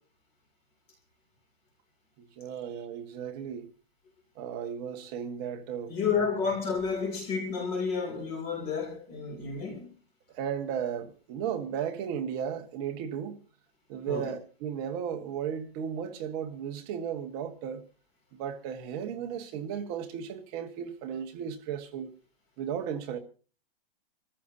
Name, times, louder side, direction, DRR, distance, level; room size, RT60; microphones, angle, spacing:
voice 1, 2.2-3.7 4.3-5.9 10.3-13.4 13.9-17.8 18.3-22.1 22.6-23.2, right 8 dB, 25° right, 1.4 m, -35 dB
voice 2, 5.9-9.9 14.1-14.3, left 5 dB, 20° left, 2.8 m, -31 dB
26.0 x 14.5 x 2.7 m
hypercardioid pair, 170°, 31 cm